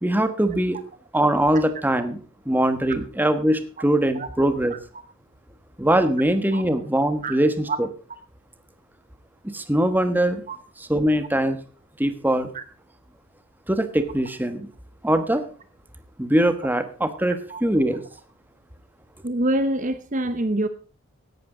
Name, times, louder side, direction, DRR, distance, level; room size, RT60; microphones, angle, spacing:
voice 1, 0.0-0.8 1.1-2.2 2.4-4.7 5.8-7.9 9.4-10.4 10.9-11.6 12.0-12.5 13.7-14.7 15.0-15.4 16.2-18.0, right 1 dB, 10° right, 10 dB, 1.3 m, -22 dB
voice 2, 19.2-20.7, right 1 dB, 35° right, 11 dB, 0.8 m, -25 dB
16.5 x 12.0 x 3.8 m, 0.39 s
head